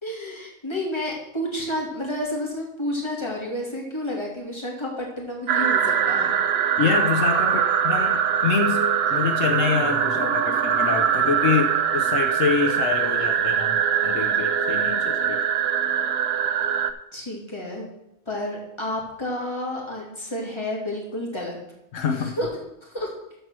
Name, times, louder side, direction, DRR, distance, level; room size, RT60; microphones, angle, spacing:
voice 1, 0.0-6.4 17.1-17.9 18.3-21.6 22.1-22.5 22.8-23.1, left 1 dB, 20° left, -2 dB, 2.7 m, -30 dB
sound 1, 5.5-16.9, right 8 dB, 60° right, 0.8 m, -22 dB
voice 2, 6.8-15.4 21.9-22.3, left 6 dB, 80° left, 5 dB, 1.2 m, -26 dB
13.5 x 4.6 x 6.1 m, 0.86 s
omnidirectional pair, 1.3 m